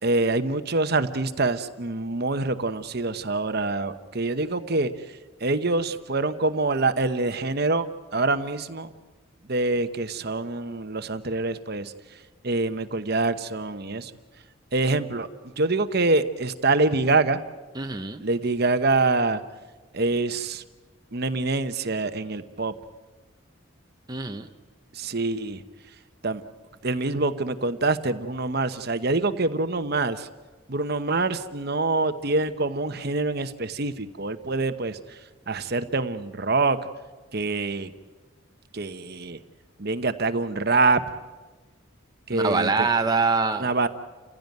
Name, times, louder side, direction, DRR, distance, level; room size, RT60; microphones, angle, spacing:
voice 1, 0.0-4.9 5.4-8.9 9.5-11.9 12.4-14.1 14.7-15.3 15.6-17.4 18.2-19.4 19.9-20.6 21.1-22.7 24.9-25.6 26.2-26.4 26.8-30.3 30.7-35.0 35.5-36.8 37.3-37.9 38.7-39.4 39.8-41.0 42.3-42.9 43.6-43.9, right 3 dB, 50° right, 10 dB, 1.0 m, -25 dB
voice 2, 17.7-18.2 24.1-24.5 42.3-43.7, right 4 dB, 20° right, 5 dB, 0.9 m, -24 dB
29.5 x 16.0 x 9.4 m, 1.3 s
head